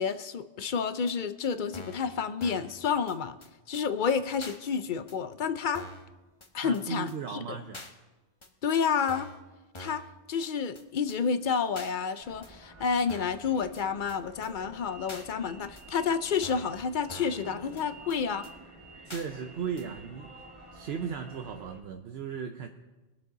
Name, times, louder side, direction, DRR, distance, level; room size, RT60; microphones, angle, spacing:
voice 1, 0.0-3.4 3.7-5.9 6.5-7.1 7.5-7.6 8.6-9.3 9.8-10.0 10.3-18.5, left 6 dB, 55° left, 12 dB, 0.6 m, -30 dB
sound 1, 1.1-1.2 1.7-2.1 2.4-2.7 3.1-3.2 3.4-3.5 3.7-3.8 4.4-4.6 5.1-5.2 5.7-6.1 6.4-6.5 6.7-6.8 7.1-7.2 7.7-7.9 8.4-8.5 9.1-9.4 9.7-10.1 10.4-10.5 10.8-10.9 11.1-11.2 11.8-11.9 12.4-12.5 13.1-13.4 13.8-13.9 14.1-14.2 14.4-14.5 15.1-15.3 15.8-15.9 16.4-16.8 17.1-17.4 17.8-17.9 18.1-18.2 18.4-18.5 19.1-19.3 19.8-19.9, left 1 dB, 30° left, 1.1 m, -45 dB
voice 2, 6.6-7.8 19.0-22.7, right 7 dB, 70° right, 5 dB, 0.9 m, -37 dB
sound 2, 12.2-21.8, right 2 dB, 30° right, 1.7 m, -50 dB
21.0 x 7.4 x 3.9 m, 1.1 s
omnidirectional pair, 1.1 m